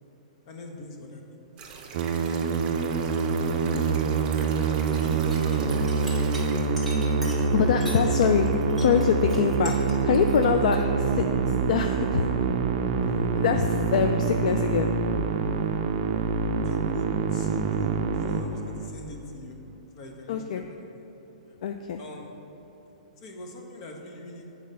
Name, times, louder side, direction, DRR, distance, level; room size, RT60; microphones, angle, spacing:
voice 1, 0.4-1.2 2.1-3.6 4.1-6.0 7.9-8.0 16.6-19.6 19.9-20.4 21.5-21.6 22.0-22.3 23.2-24.5, left 2 dB, 45° left, 2 dB, 1.1 m, -42 dB
sound 1, 1.6-6.7, right 5 dB, 25° right, 0.9 m, -43 dB
Musical instrument, 1.9-19.1, right 5 dB, 45° right, 0.5 m, -26 dB
sound 2, 4.9-8.0 8.3-10.8, right 1 dB, 5° left, 1.2 m, -41 dB
voice 2, 7.5-9.8 10.0-12.6 13.0-14.9 20.3-20.7 21.6-22.0, left 7 dB, 65° left, 6 dB, 0.4 m, -25 dB
7.5 x 4.7 x 5.5 m, 3.0 s
hypercardioid pair, 140°, 4 cm